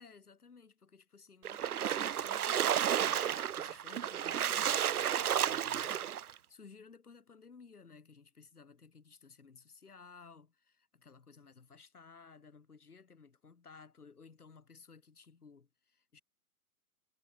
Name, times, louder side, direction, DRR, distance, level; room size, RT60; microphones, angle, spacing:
voice 1, 0.0-16.2, left 5 dB, 80° left, 6.5 m, -57 dB
Splash splatter, 1.4-6.3, right 9 dB, 80° right, 0.7 m, -32 dB
figure-of-eight pair, 125°, 44 cm